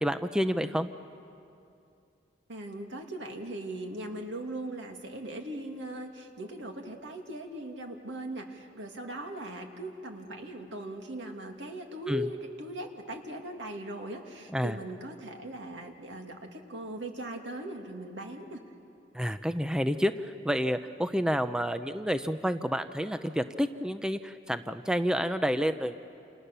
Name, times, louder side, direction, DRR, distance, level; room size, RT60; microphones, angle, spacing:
voice 1, 0.0-0.9 12.1-12.3 14.5-14.8 19.1-26.0, equal, 5° right, 9 dB, 0.5 m, -29 dB
voice 2, 2.5-18.6, right 1 dB, 85° right, 3 dB, 2.6 m, -39 dB
28.5 x 28.0 x 6.9 m, 2.6 s
head